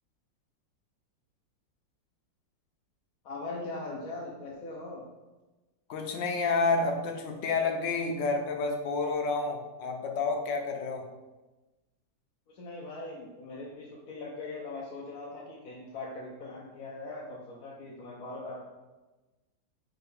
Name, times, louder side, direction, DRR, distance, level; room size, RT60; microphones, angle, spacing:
voice 1, 3.2-5.0 12.5-18.6, left 2 dB, 60° left, -4 dB, 1.2 m, -40 dB
voice 2, 5.9-11.1, left 4 dB, 75° left, 3 dB, 1.4 m, -29 dB
4.9 x 4.4 x 4.9 m, 1.1 s
omnidirectional pair, 2.0 m